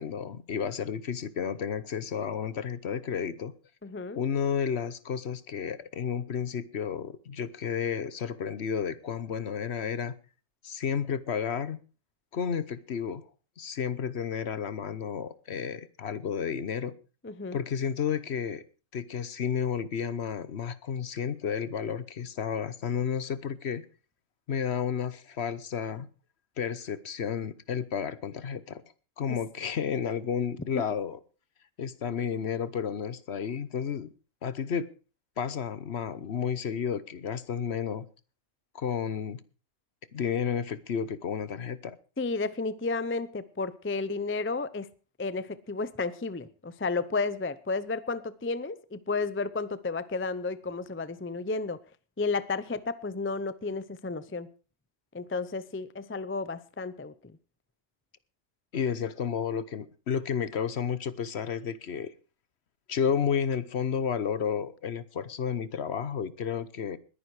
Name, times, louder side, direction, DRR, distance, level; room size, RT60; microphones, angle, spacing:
voice 1, 0.0-3.5 4.1-10.1 10.6-11.8 12.3-13.2 13.6-16.9 17.5-18.6 18.9-23.8 24.5-26.1 26.6-28.8 29.2-31.2 31.8-34.1 34.4-34.9 35.4-38.1 38.7-39.4 40.1-42.0 58.7-62.1 62.9-67.0, left 7 dB, 60° left, 1.1 m, -31 dB
voice 2, 3.8-4.2 17.2-17.6 29.3-29.4 30.7-30.8 42.2-44.9 45.2-51.8 52.2-54.5 55.1-57.3, left 3 dB, 15° left, 0.5 m, -32 dB
20.0 x 10.0 x 4.8 m
omnidirectional pair, 1.3 m